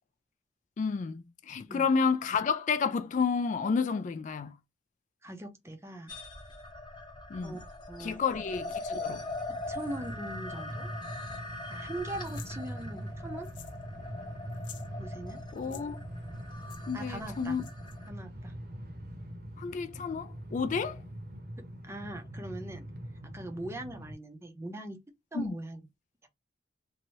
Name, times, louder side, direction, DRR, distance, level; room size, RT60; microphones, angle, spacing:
voice 1, 0.8-4.5 7.3-7.6 8.0-9.2 15.5-16.0 16.8-17.7 19.6-21.0 25.3-25.6, left 5 dB, 45° left, 0.3 m, -30 dB
voice 2, 5.2-6.1 7.4-8.2 9.7-10.9 11.7-13.5 15.0-15.4 16.9-17.6 18.1-18.5 21.8-22.9 23.3-25.0 25.3-25.8 26.2-26.3, right 1 dB, 15° right, 0.6 m, -41 dB
sound 1, 6.1-18.1, left 2 dB, 25° left, 0.9 m, -42 dB
Train, 9.0-24.1, equal, 55° right, 0.9 m, -43 dB
sound 2, 12.2-12.5 13.4-13.8 14.1-14.2 14.5-14.9 15.6-15.8 16.7-16.8 17.6-17.9, left 10 dB, 85° left, 0.7 m, -50 dB
2.7 x 2.6 x 3.0 m
head